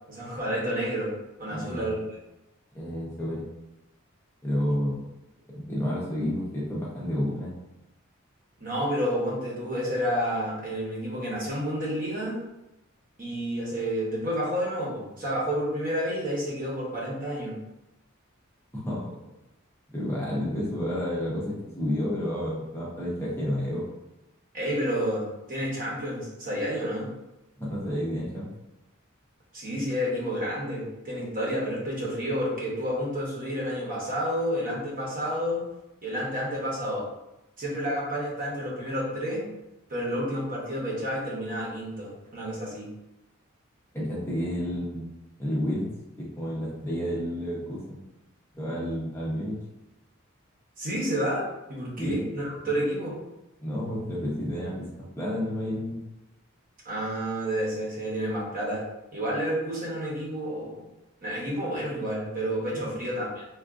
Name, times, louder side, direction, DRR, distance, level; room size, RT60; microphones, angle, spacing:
voice 1, 0.1-1.1 1.4-2.0 8.6-12.4 13.2-17.6 24.5-27.1 29.5-35.6 36.0-37.1 37.6-39.4 39.9-42.9 50.8-53.1 56.8-58.8 59.1-60.8 61.2-63.4, equal, 45° right, -5 dB, 0.9 m, -30 dB
voice 2, 1.5-1.9 2.7-3.5 4.4-5.1 5.5-7.5 18.7-19.0 19.9-23.9 27.6-28.5 43.9-45.1 45.4-45.9 46.2-48.0 48.5-49.6 52.0-52.2 52.6-52.7 53.6-56.0, equal, 10° left, -6 dB, 0.6 m, -30 dB
3.5 x 2.4 x 2.4 m, 0.95 s
head